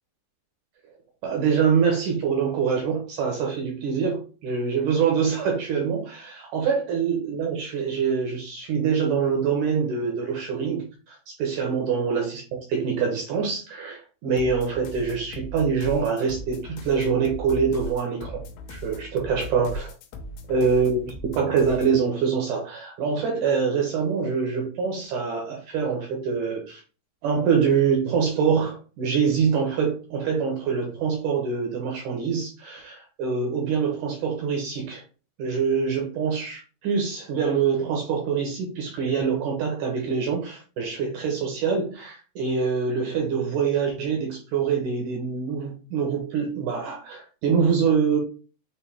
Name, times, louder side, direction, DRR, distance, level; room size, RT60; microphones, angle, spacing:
voice 1, 1.2-12.4 12.7-18.4 18.7-19.9 20.5-26.8 27.2-35.0 35.4-48.2, right 6 dB, 75° right, 1 dB, 1.9 m, -25 dB
sound 1, 14.4-22.0, left 1 dB, 80° left, 2.2 m, -38 dB
6.0 x 2.6 x 3.3 m, 0.36 s
omnidirectional pair, 4.5 m